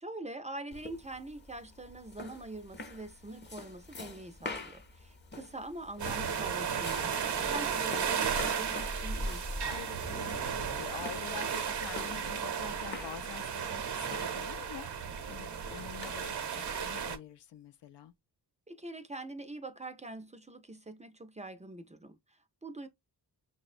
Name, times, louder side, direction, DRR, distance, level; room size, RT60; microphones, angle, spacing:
voice 1, 0.0-9.5 18.7-22.9, right 2 dB, 20° right, 0.4 m, -44 dB
sound 1, 0.7-16.3, left 2 dB, 25° left, 0.6 m, -45 dB
sound 2, 6.0-17.2, right 7 dB, 70° right, 0.7 m, -34 dB
voice 2, 9.7-18.1, left 9 dB, 85° left, 0.5 m, -47 dB
sound 3, 9.7-13.4 13.7-13.9 14.3-14.7 15.9-16.0 17.0-17.1, left 5 dB, 55° left, 0.8 m, -52 dB
5.8 x 2.1 x 2.4 m
wide cardioid pair, 75°, 41 cm